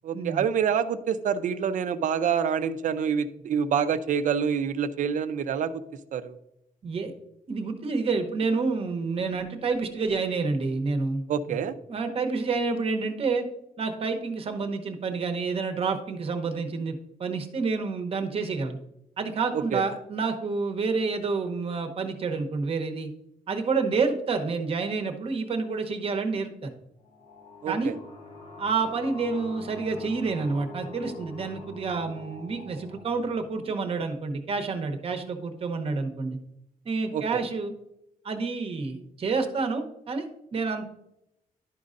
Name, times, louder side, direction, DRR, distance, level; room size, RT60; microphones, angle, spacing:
voice 1, 0.0-5.8 6.1-6.4 11.3-11.7 19.5-19.8 27.6-27.9 37.1-37.4, right 7 dB, 60° right, 12 dB, 0.5 m, -27 dB
voice 2, 7.5-11.2 11.9-13.4 13.8-16.9 17.2-18.8 19.2-23.1 23.5-26.7 27.7-27.9 28.6-36.4 36.8-37.7 38.2-40.3 40.5-40.9, right 4 dB, 40° right, 6 dB, 0.9 m, -28 dB
sound 1, 27.0-34.4, left 3 dB, 45° left, 1.0 m, -45 dB
11.5 x 5.3 x 2.5 m, 0.82 s
wide cardioid pair, 165°, 15 cm